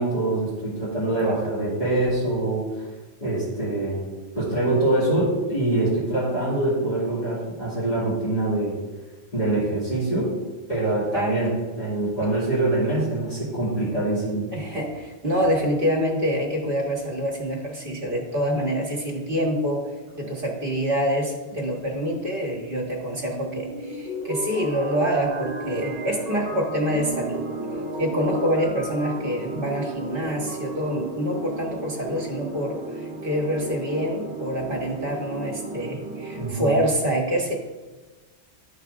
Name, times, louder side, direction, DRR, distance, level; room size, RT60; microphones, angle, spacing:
voice 1, 0.0-2.8 3.2-4.1 4.3-8.8 9.3-10.4 10.7-14.5 36.4-36.7, right 2 dB, 40° left, -10 dB, 2.3 m, -24 dB
voice 2, 1.1-1.5 11.1-11.4 14.5-19.9 20.1-27.5 28.0-37.5, equal, 55° right, -1 dB, 1.5 m, -26 dB
sound 1, 23.3-36.5, right 2 dB, 70° right, 1.6 m, -34 dB
12.0 x 4.7 x 2.5 m, 1.3 s
omnidirectional pair, 1.1 m